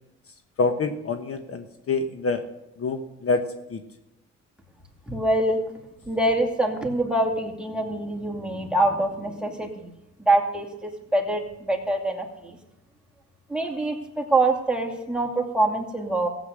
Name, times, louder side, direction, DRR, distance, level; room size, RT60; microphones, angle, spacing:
voice 1, 0.6-2.4 2.8-3.4 3.7-3.8, left 4 dB, 50° left, 7 dB, 1.2 m, -26 dB
voice 2, 5.1-5.6 6.1-9.9 10.2-12.6 13.5-16.3, right 2 dB, 5° right, 1 dB, 2.5 m, -25 dB
15.5 x 8.1 x 6.5 m, 0.93 s
cardioid pair, 90°, 30 cm